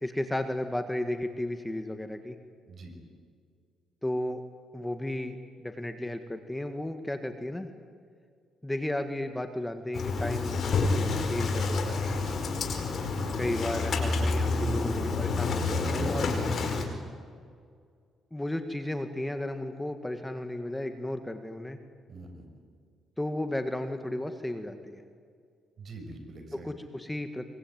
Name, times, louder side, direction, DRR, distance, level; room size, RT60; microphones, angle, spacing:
voice 1, 0.0-2.4 4.0-4.4 4.7-5.4 5.6-7.7 8.6-12.0 13.4-16.3 18.3-21.8 23.2-25.0 26.5-27.4, left 1 dB, 10° left, 7 dB, 1.8 m, -34 dB
Engine starting, 9.9-16.8, left 3 dB, 55° left, 4.9 m, -28 dB
voice 2, 16.0-16.3 22.1-22.4 25.8-26.7, right 2 dB, 50° right, 5 dB, 6.3 m, -45 dB
23.5 x 23.5 x 9.5 m, 2.1 s
cardioid pair, 90°, 0 cm